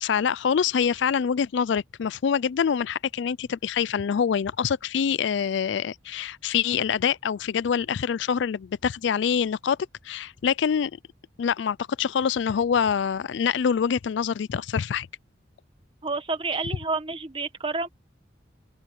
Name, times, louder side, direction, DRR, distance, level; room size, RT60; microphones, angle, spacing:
voice 1, 0.0-9.8 10.0-10.9 11.4-15.1, left 7 dB, 70° left, 0.4 m, -25 dB
voice 2, 16.0-17.9, right 3 dB, 25° right, 1.3 m, -29 dB
open air
head